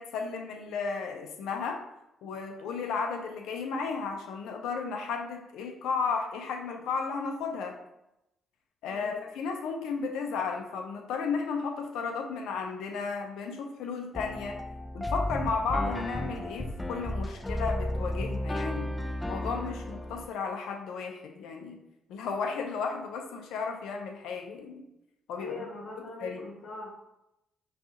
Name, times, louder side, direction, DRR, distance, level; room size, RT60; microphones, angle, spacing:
voice 1, 0.0-1.8 2.2-7.8 8.8-14.6 14.9-18.9 19.3-21.8 22.1-24.8 25.3-25.5 26.2-26.4, left 5 dB, 90° left, 3 dB, 0.6 m, -34 dB
voice 2, 8.8-9.2 25.4-27.0, left 2 dB, 60° left, -4 dB, 0.9 m, -42 dB
sound 1, 14.1-20.3, left 1 dB, 15° left, 0.4 m, -33 dB
5.3 x 2.4 x 2.9 m, 0.86 s
cardioid pair, 100°, 0 cm